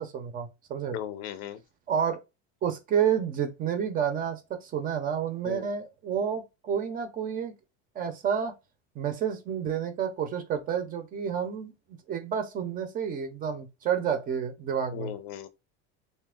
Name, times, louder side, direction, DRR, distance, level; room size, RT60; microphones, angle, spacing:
voice 1, 0.0-1.0 1.9-2.2 2.6-7.5 7.9-8.5 9.0-11.7 12.1-15.1, right 8 dB, 30° right, 0.6 m, -30 dB
voice 2, 0.9-1.6 5.4-5.7 14.9-15.5, left 10 dB, 75° left, 0.7 m, -37 dB
3.3 x 2.8 x 3.6 m
cardioid pair, 155°, 29 cm